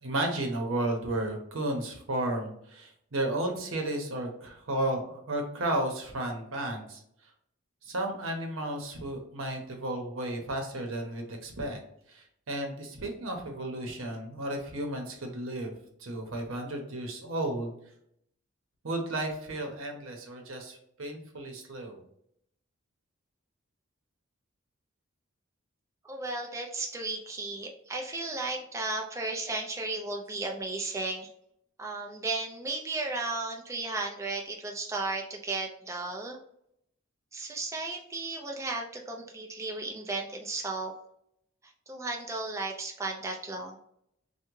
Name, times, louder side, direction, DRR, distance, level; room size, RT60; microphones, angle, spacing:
voice 1, 0.0-7.0 7.8-11.8 12.1-15.7 16.0-17.7 18.8-22.0, right 1 dB, 75° right, 3 dB, 0.8 m, -33 dB
voice 2, 26.1-31.3 31.8-36.4 37.3-40.9 41.9-43.8, right 3 dB, 15° right, 1 dB, 0.3 m, -34 dB
3.4 x 2.2 x 3.0 m, 0.73 s
head